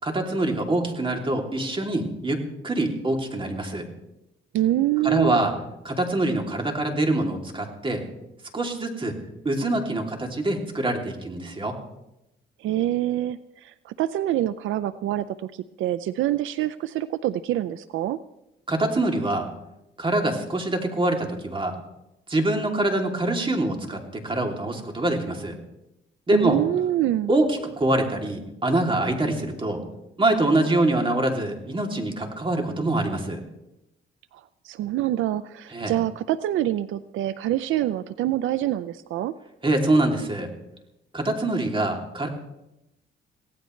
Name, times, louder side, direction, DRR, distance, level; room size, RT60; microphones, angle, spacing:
voice 1, 0.0-3.9 5.0-5.5 5.8-8.0 8.5-9.2 9.4-11.8 18.7-19.5 20.0-21.7 22.3-25.6 26.3-26.6 27.3-29.8 30.2-33.4 35.7-35.9 39.6-40.5 41.1-42.3, right 2 dB, 25° right, 2 dB, 2.9 m, -24 dB
voice 2, 4.5-5.4 12.6-15.5 15.8-18.2 26.3-27.3 34.6-39.3, right 13 dB, 80° right, 14 dB, 0.5 m, -25 dB
23.5 x 17.0 x 3.2 m, 0.89 s
cardioid pair, 90°, 20 cm